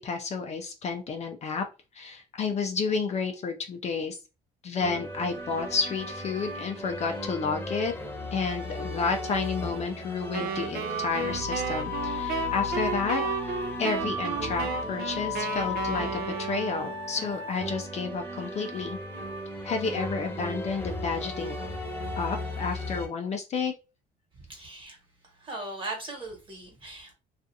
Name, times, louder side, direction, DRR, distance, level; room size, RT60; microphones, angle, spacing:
voice 1, 0.0-1.7 1.9-4.2 4.6-7.9 8.3-13.5 13.8-19.0 19.6-21.5 22.1-23.7, left 4 dB, 40° left, 0.5 m, -31 dB
sound 1, 4.8-23.1, left 2 dB, 15° left, 0.9 m, -35 dB
Wind instrument woodwind instrument, 10.3-17.2, right 6 dB, 65° right, 0.4 m, -33 dB
voice 2, 24.5-25.0 25.2-27.1, right 2 dB, 30° right, 1.2 m, -39 dB
2.4 x 2.4 x 2.6 m
cardioid pair, 110°, 17 cm